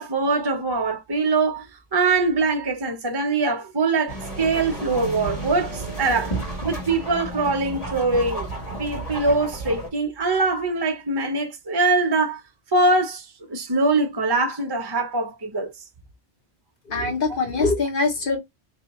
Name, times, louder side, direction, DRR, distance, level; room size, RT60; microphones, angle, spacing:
voice 1, 0.0-1.7 1.9-6.3 6.6-8.5 8.8-12.4 12.7-15.7, right 3 dB, 35° right, 0.4 m, -23 dB
sound 1, 4.1-9.9, right 2 dB, 35° left, 1.2 m, -32 dB
voice 2, 16.9-18.4, left 3 dB, 50° left, 1.4 m, -23 dB
4.0 x 2.7 x 2.9 m
omnidirectional pair, 1.2 m